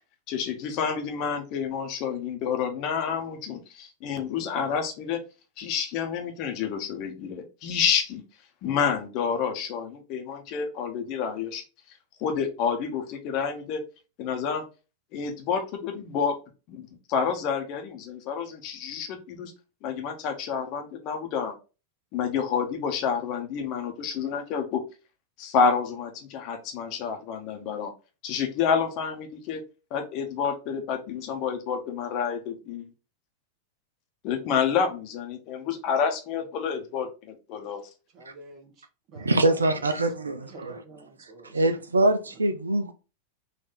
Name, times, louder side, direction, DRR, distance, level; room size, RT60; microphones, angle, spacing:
voice 1, 0.3-5.2 5.6-8.2 8.6-11.6 12.2-13.8 14.2-14.6 15.1-16.4 16.7-19.5 19.8-21.5 22.1-24.8 25.4-27.9 28.2-29.6 29.9-32.9 34.2-37.8, left 6 dB, 40° left, 0.9 m, -29 dB
voice 2, 38.1-39.8 40.4-41.6 42.0-42.1, right 2 dB, 35° right, 1.2 m, -47 dB
voice 3, 39.1-40.8 41.5-42.9, right 2 dB, 75° right, 0.4 m, -24 dB
4.1 x 2.6 x 4.0 m
figure-of-eight pair, 90°, 0 cm